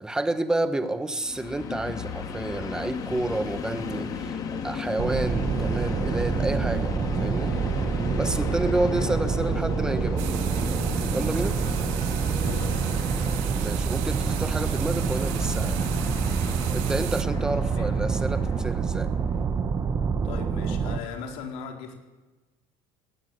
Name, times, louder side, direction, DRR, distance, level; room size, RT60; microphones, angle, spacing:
voice 1, 0.0-4.4 4.6-6.9 7.2-7.5 8.1-10.2 11.1-11.6 13.6-15.8 16.7-19.1, right 2 dB, 5° right, 10 dB, 1.3 m, -29 dB
Train, 1.2-19.3, left 5 dB, 30° left, 2.5 m, -35 dB
sound 1, 5.0-21.0, right 6 dB, 25° right, 1.0 m, -27 dB
sound 2, 10.2-17.2, right 18 dB, 70° right, 1.2 m, -38 dB
voice 2, 12.4-12.8 17.6-17.9 20.2-22.0, left 6 dB, 65° left, 3 dB, 4.2 m, -38 dB
20.5 x 18.0 x 8.1 m, 1.2 s
cardioid pair, 170°, 12 cm